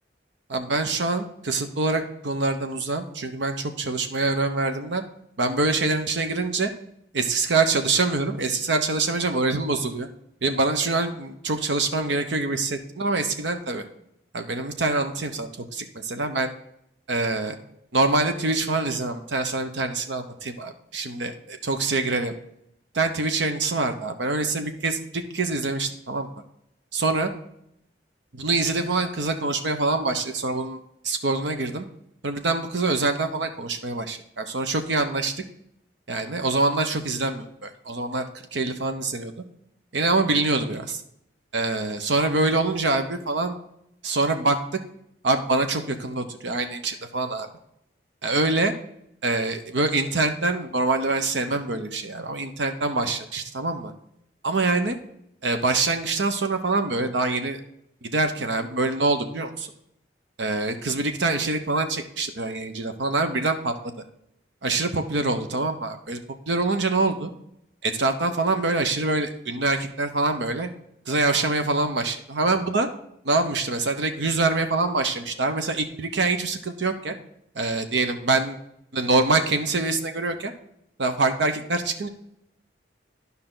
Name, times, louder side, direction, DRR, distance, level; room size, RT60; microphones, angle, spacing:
voice 1, 0.5-5.0 5.4-6.7 7.1-10.1 10.4-13.8 14.3-16.5 17.1-17.6 17.9-22.3 22.9-26.3 26.9-27.3 28.3-30.8 31.0-31.9 32.2-35.3 36.1-38.2 38.5-39.3 39.9-41.0 41.5-43.6 44.0-44.6 45.2-47.5 48.2-48.7 49.2-53.9 54.4-55.0 55.4-57.6 58.0-59.7 60.4-63.7 64.6-66.2 66.5-67.3 67.8-70.7 71.1-72.9 73.2-77.2 77.5-78.6 78.9-80.5 81.0-82.1, right 3 dB, 80° right, 6 dB, 0.9 m, -25 dB
11.0 x 5.6 x 3.8 m, 0.76 s
head